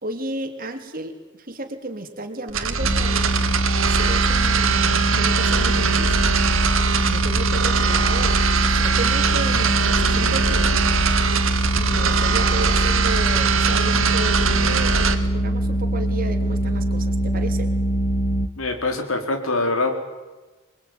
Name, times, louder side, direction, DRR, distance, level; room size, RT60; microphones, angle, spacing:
voice 1, 0.0-6.2 7.0-10.8 11.6-17.7, right 2 dB, 45° right, 5 dB, 3.3 m, -33 dB
sound 1, 2.5-15.2, right 5 dB, 75° right, 2.4 m, -21 dB
sound 2, 2.8-18.5, right 1 dB, 40° left, 1.4 m, -23 dB
voice 2, 18.6-19.9, left 2 dB, 85° left, 5 dB, 4.2 m, -23 dB
26.5 x 22.0 x 9.5 m, 1.2 s
head